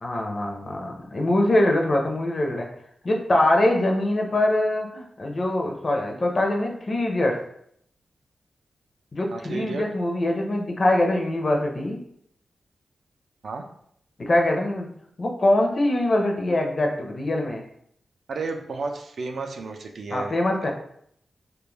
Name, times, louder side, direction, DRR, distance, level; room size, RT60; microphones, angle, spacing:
voice 1, 0.0-2.7 3.0-7.4 9.1-12.0 14.2-14.9 15.2-17.6 20.1-20.7, left 1 dB, 45° left, 1 dB, 0.5 m, -23 dB
voice 2, 9.3-9.8 13.4-13.6 18.3-20.4 20.6-20.7, right 4 dB, 75° right, 4 dB, 0.3 m, -32 dB
2.2 x 2.1 x 3.1 m, 0.69 s
wide cardioid pair, 95°, 0 cm